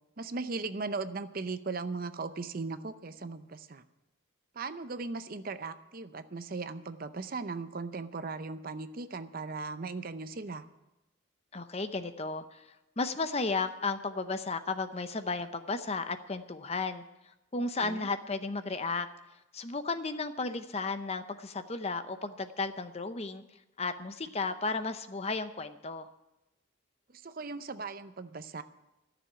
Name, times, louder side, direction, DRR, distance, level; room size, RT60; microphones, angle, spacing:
voice 1, 0.2-3.8 4.5-10.6 17.8-18.1 27.1-28.6, right 3 dB, 45° right, 11 dB, 0.6 m, -38 dB
voice 2, 11.5-17.0 17.5-19.1 19.5-23.4 23.8-26.1, left 3 dB, 30° left, 10 dB, 0.7 m, -34 dB
13.5 x 7.0 x 9.9 m, 0.96 s
head